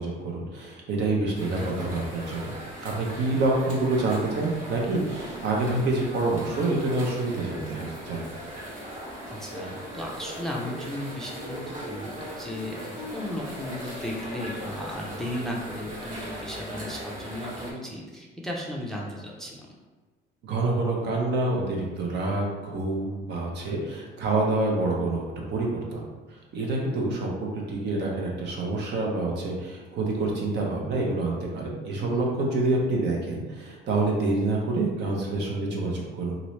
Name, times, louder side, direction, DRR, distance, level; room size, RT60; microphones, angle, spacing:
voice 1, 0.0-2.5 2.8-8.2 20.4-25.2 25.5-26.0 26.3-36.4, right 2 dB, 65° right, -2 dB, 0.8 m, -27 dB
sound 1, 1.3-17.7, equal, 40° right, 1.1 m, -39 dB
voice 2, 9.4-19.5 31.9-32.4, left 1 dB, ahead, -2 dB, 0.4 m, -35 dB
2.8 x 2.6 x 3.1 m, 1.3 s
cardioid pair, 115°, 20 cm